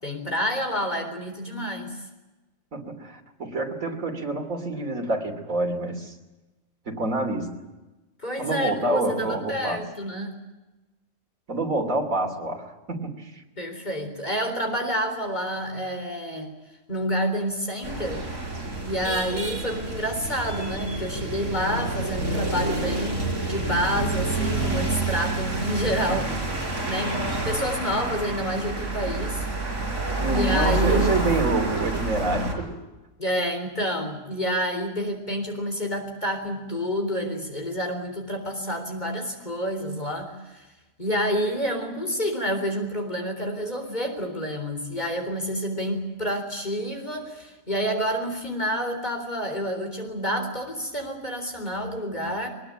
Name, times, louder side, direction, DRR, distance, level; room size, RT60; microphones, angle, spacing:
voice 1, 0.0-2.0 8.2-10.3 13.6-16.5 16.9-18.3 18.9-26.6 26.8-27.1 27.4-29.5 30.3-31.3 33.2-40.7 41.0-52.5, equal, 35° left, 5 dB, 4.0 m, -28 dB
voice 2, 2.7-6.2 6.9-7.5 8.4-9.8 11.5-13.4 30.2-32.8, right 2 dB, 80° right, 4 dB, 3.5 m, -27 dB
sound 1, 17.8-32.5, right 2 dB, 65° right, 5.3 m, -28 dB
22.5 x 20.5 x 8.8 m, 1.1 s
omnidirectional pair, 1.4 m